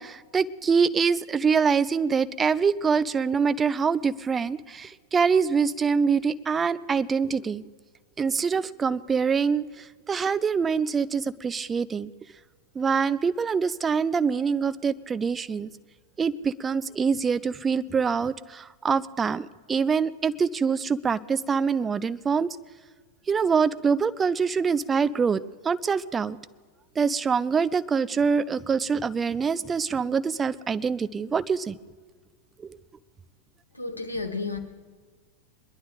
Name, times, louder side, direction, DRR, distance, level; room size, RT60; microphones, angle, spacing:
voice 1, 0.0-7.6 8.2-12.1 12.8-15.7 16.2-22.5 23.3-26.4 27.0-31.8, right 5 dB, 20° right, 13 dB, 0.4 m, -25 dB
voice 2, 33.7-34.6, left 3 dB, 85° left, 6 dB, 1.3 m, -31 dB
22.0 x 11.5 x 3.8 m, 1.5 s
figure-of-eight pair, 90°, 0 cm